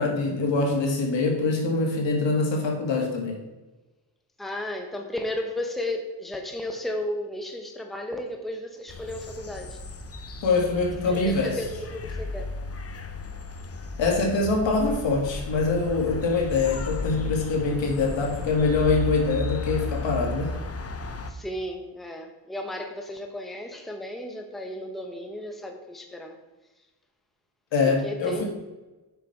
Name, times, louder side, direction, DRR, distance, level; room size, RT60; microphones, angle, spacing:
voice 1, 0.0-3.4 10.4-11.6 14.0-20.5 27.7-28.4, left 3 dB, 70° left, 1 dB, 2.1 m, -24 dB
voice 2, 4.4-9.8 11.1-12.5 21.3-26.4 27.8-28.4, left 1 dB, ahead, 3 dB, 1.1 m, -34 dB
sound 1, 8.9-21.3, left 3 dB, 30° left, 0.9 m, -34 dB
6.8 x 6.0 x 4.7 m, 1.1 s
cardioid pair, 85°, 45 cm